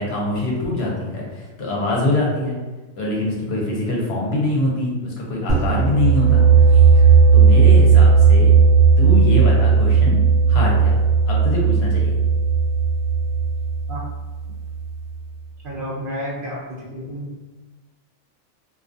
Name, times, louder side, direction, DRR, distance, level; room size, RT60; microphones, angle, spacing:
voice 1, 0.0-2.6 3.0-7.0 7.3-8.6 9.0-10.2 10.5-10.9 11.3-12.1, left 1 dB, 65° left, -3 dB, 0.8 m, -24 dB
sound 1, 5.5-15.1, right 5 dB, 85° right, 0.9 m, -15 dB
voice 2, 15.6-16.6 16.9-17.3, equal, 55° right, -5 dB, 0.7 m, -30 dB
2.4 x 2.3 x 2.5 m, 1.2 s
omnidirectional pair, 1.2 m